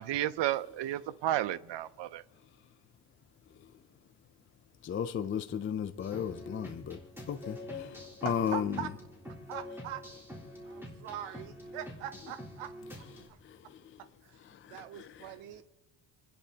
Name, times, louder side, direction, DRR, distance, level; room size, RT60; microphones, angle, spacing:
voice 1, 0.0-2.2, right 13 dB, 60° right, 0.5 m, -32 dB
voice 2, 4.8-8.8 13.2-14.0 14.4-15.3, left 8 dB, 25° left, 0.4 m, -36 dB
sound 1, 6.0-13.3, left 1 dB, 5° right, 3.7 m, -46 dB
voice 3, 8.2-8.9 9.5-10.0 10.6-12.7 13.0-13.4 14.2-14.4 14.7-15.6, right 11 dB, 75° right, 0.9 m, -42 dB
29.5 x 10.5 x 2.8 m
cardioid pair, 125°, 50 cm